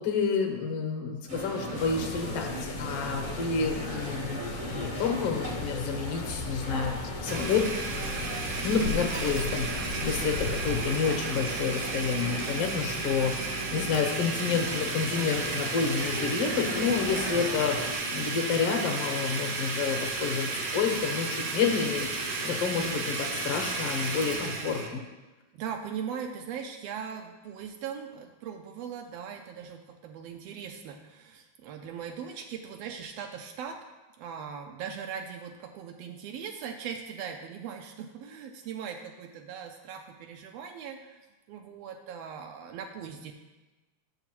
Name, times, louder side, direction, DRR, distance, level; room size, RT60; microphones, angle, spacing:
voice 1, 0.0-4.4 4.7-7.6 8.6-25.0, left 5 dB, 60° left, 2 dB, 1.8 m, -29 dB
sound 1, 1.3-17.9, right 1 dB, 40° right, 0.7 m, -38 dB
sound 2, 1.8-10.9, left 6 dB, 90° left, 2.0 m, -38 dB
Domestic sounds home sounds, 7.3-24.9, right 3 dB, 65° right, 1.3 m, -33 dB
voice 2, 25.5-33.8 34.2-41.2 41.5-43.3, right 7 dB, 85° right, 3 dB, 1.4 m, -39 dB
11.5 x 7.0 x 3.0 m, 1.2 s
omnidirectional pair, 3.4 m